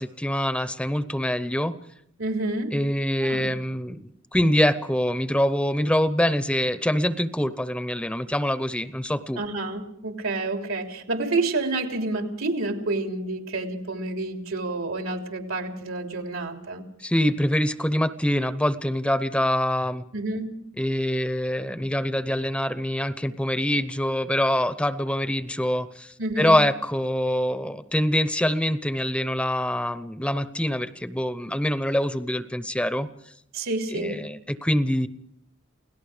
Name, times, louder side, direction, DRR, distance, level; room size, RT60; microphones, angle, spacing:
voice 1, 0.0-1.7 2.7-9.4 17.0-20.0 20.8-33.1 33.9-35.1, equal, 5° left, 12 dB, 0.7 m, -25 dB
voice 2, 2.2-2.8 3.2-3.5 9.4-16.8 20.1-20.6 26.2-26.6 33.5-34.3, right 2 dB, 85° right, 3 dB, 3.4 m, -29 dB
29.0 x 18.0 x 5.0 m, 0.72 s
head